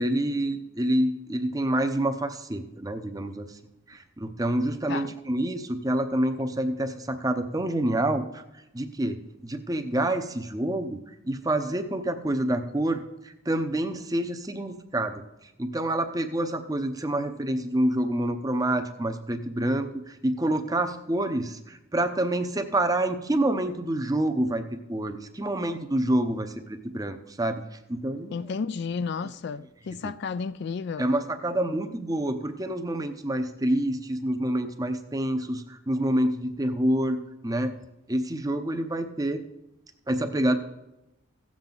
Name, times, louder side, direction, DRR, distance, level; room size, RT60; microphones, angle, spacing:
voice 1, 0.0-3.6 3.9-8.4 8.7-15.2 15.6-24.6 24.9-27.6 27.9-28.5 29.9-30.1 31.0-37.2 37.4-37.7 38.1-39.4 40.1-40.6, right 1 dB, 20° right, 0.7 m, -27 dB
voice 2, 28.3-31.1, left 5 dB, 55° left, 0.3 m, -32 dB
16.5 x 7.4 x 3.9 m
head